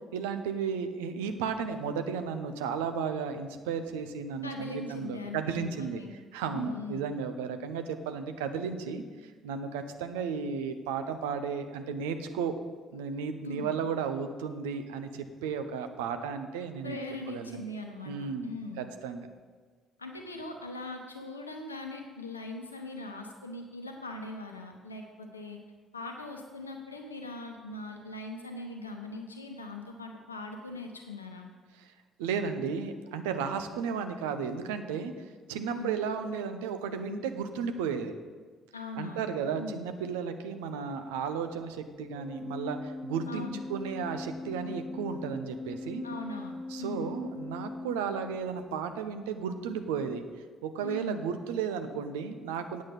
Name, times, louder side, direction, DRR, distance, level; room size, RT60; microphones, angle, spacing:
voice 1, 0.1-6.0 6.3-12.6 12.9-17.0 17.3-17.6 18.0-18.5 18.8-19.3 31.8-31.9 32.2-35.1 35.5-38.1 39.0-46.0 46.7-50.2 50.6-52.8, right 6 dB, 70° right, 8 dB, 0.7 m, -34 dB
voice 2, 4.4-6.1 6.5-7.0 13.4-13.7 16.8-18.9 20.0-25.6 25.9-31.5 35.7-36.0 38.7-39.8 43.3-43.6 46.0-47.2 50.8-51.3, left 2 dB, 85° left, 3 dB, 0.9 m, -40 dB
Organ, 42.1-48.7, left 2 dB, 35° right, 1.1 m, -41 dB
8.8 x 8.4 x 5.7 m, 1.5 s
figure-of-eight pair, 45°, 0 cm